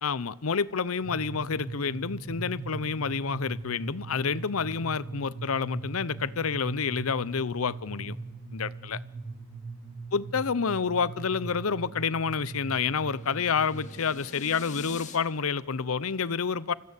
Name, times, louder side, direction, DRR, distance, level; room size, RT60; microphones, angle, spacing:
voice 1, 0.0-8.2 8.5-9.0 10.1-16.7, left 5 dB, 85° left, 19 dB, 0.7 m, -29 dB
sound 1, 1.0-14.0, right 3 dB, 25° right, 7.4 m, -40 dB
sound 2, 11.8-15.2, left 4 dB, 35° left, 2.3 m, -47 dB
27.0 x 16.0 x 8.4 m, 1.3 s
head